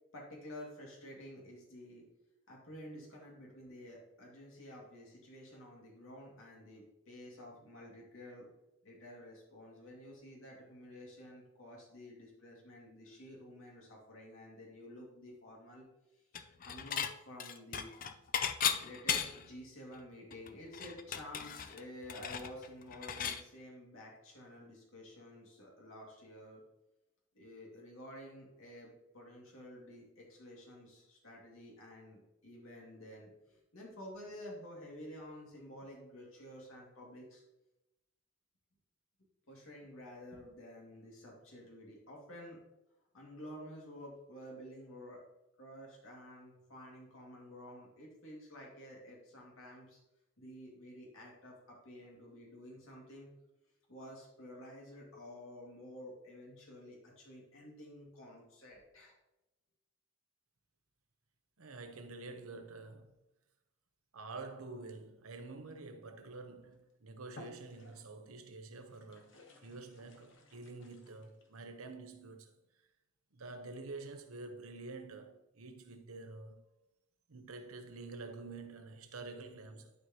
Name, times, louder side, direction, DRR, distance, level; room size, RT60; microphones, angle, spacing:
voice 1, 0.1-2.0 2.5-8.5 8.8-15.9 16.6-17.9 18.8-26.6 27.3-37.4 39.5-42.6 43.1-45.2 45.6-50.0 50.4-53.3 53.9-59.1, left 1 dB, 75° left, 2.3 m, -51 dB
Dishes pots and pans / Chink clink, 16.3-17.1 17.4-19.5 19.9-20.0 20.3-23.4, left 8 dB, 40° left, 0.4 m, -36 dB
voice 2, 61.6-63.1 64.1-72.5 73.3-76.6 77.3-79.9, right 3 dB, 90° right, 0.9 m, -48 dB
sound 1, 66.6-66.8 67.3-68.3 68.9-71.6, left 1 dB, 60° left, 1.2 m, -57 dB
11.5 x 4.8 x 3.0 m
head